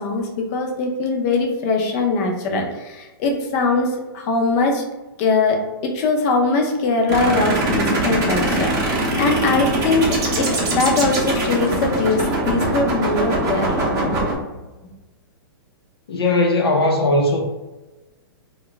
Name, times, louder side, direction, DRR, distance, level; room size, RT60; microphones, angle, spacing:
voice 1, 0.0-3.9 4.1-4.8 5.2-10.1 10.4-14.3, left 3 dB, 35° left, 2 dB, 0.6 m, -21 dB
sound 1, 7.1-14.3, right 2 dB, 25° right, 0.7 m, -22 dB
voice 2, 16.1-17.4, left 2 dB, 90° left, 2 dB, 0.7 m, -18 dB
2.3 x 2.1 x 3.8 m, 1.1 s
hypercardioid pair, 150°, 13 cm